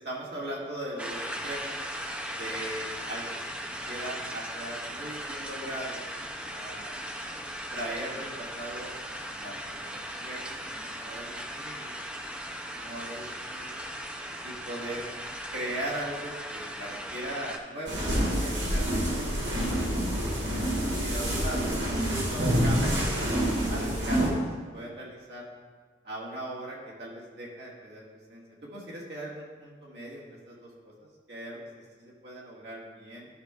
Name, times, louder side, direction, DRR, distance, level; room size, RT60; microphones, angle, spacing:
voice 1, 0.0-1.8 2.3-3.4 3.8-6.0 6.5-8.9 9.3-11.9 12.7-13.8 14.4-15.1 15.5-20.6 21.0-21.7 22.3-24.4 24.7-25.5 26.0-28.0 28.3-33.3, right 1 dB, 65° right, -5 dB, 1.7 m, -39 dB
sound 1, 1.0-17.6, equal, 5° right, 0.4 m, -38 dB
sound 2, 17.9-24.3, equal, 80° right, 1.8 m, -27 dB
12.5 x 6.2 x 2.3 m, 1.5 s
head